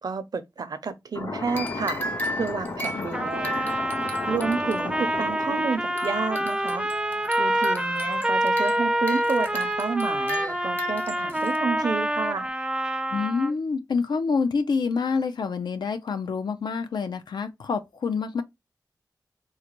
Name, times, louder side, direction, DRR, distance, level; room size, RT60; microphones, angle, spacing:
voice 1, 0.0-2.0 2.4-3.7 4.3-6.9 7.4-12.5, right 5 dB, 65° right, 0.5 m, -30 dB
sound 1, 1.1-6.9, left 3 dB, 60° left, 2.2 m, -34 dB
sound 2, 1.5-12.5, left 1 dB, 25° left, 0.7 m, -36 dB
Trumpet, 3.1-13.5, right 1 dB, 10° right, 0.4 m, -27 dB
voice 2, 13.1-18.4, left 5 dB, 90° left, 0.5 m, -27 dB
3.9 x 2.2 x 2.9 m
wide cardioid pair, 90°, 7 cm